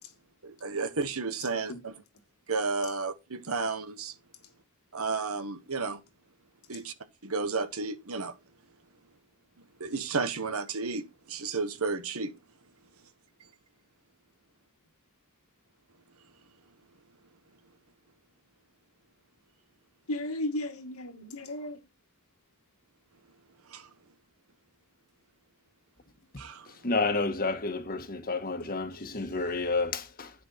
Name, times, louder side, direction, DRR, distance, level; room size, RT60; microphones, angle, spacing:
voice 1, 0.4-1.9 2.5-4.2 4.9-6.0 6.7-6.9 7.2-8.4 9.8-12.3 23.7-23.9 26.4-26.7, right 4 dB, 75° right, 1.3 m, -32 dB
voice 2, 20.1-21.8 28.9-29.4, left 1 dB, 75° left, 2.0 m, -35 dB
voice 3, 26.8-30.3, left 3 dB, 40° left, 1.5 m, -30 dB
10.0 x 6.8 x 4.2 m
head